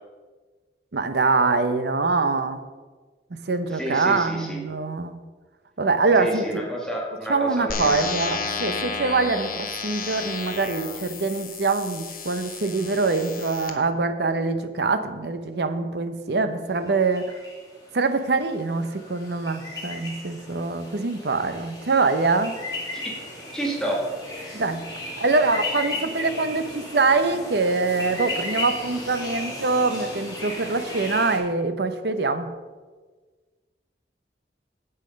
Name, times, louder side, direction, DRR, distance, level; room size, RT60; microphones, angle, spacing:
voice 1, 0.9-2.6 3.5-5.2 5.8-6.6 7.3-17.3 17.9-22.6 24.5-24.8 25.2-32.5, right 3 dB, 65° right, 9 dB, 0.8 m, -24 dB
voice 2, 3.7-4.6 6.2-8.1 22.9-23.1 23.5-24.0, right 1 dB, 5° left, -3 dB, 1.9 m, -30 dB
sound 1, 7.7-13.7, left 5 dB, 50° left, 1.0 m, -32 dB
sound 2, 16.9-31.4, left 2 dB, 20° left, 2.7 m, -35 dB
8.4 x 8.1 x 5.3 m, 1.4 s
head